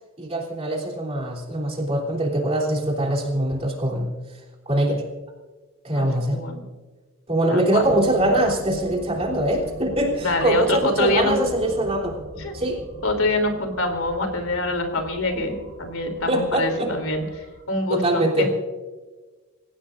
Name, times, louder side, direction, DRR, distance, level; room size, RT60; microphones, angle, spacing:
voice 1, 0.2-4.1 4.6-5.0 5.8-6.4 7.3-12.1 12.5-12.8 16.3-16.9 17.9-18.5, right 1 dB, 30° right, -1 dB, 3.4 m, -23 dB
voice 2, 5.9-6.6 7.5-7.9 10.2-11.3 12.4-12.5 13.0-18.5, left 2 dB, 80° left, 5 dB, 3.2 m, -25 dB
sound 1, 7.7-17.6, equal, 50° right, 5.0 m, -40 dB
27.0 x 16.5 x 2.6 m, 1.3 s
head